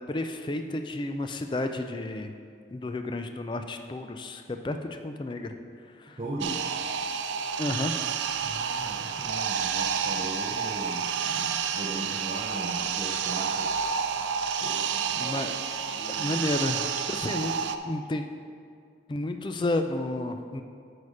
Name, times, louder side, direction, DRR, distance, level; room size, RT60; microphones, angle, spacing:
voice 1, 0.1-2.3 2.7-5.5 6.0-6.2 7.6-8.0 15.2-15.5 16.1-17.5 17.8-18.2 19.1-20.6, left 2 dB, 25° left, 7 dB, 0.4 m, -31 dB
voice 2, 6.2-6.7 8.4-13.8 14.6-15.5 15.8-16.4, right 1 dB, 30° right, -3 dB, 0.6 m, -39 dB
sound 1, 6.4-17.8, right 7 dB, 80° right, 0.4 m, -30 dB
8.4 x 5.0 x 4.9 m, 2.3 s
head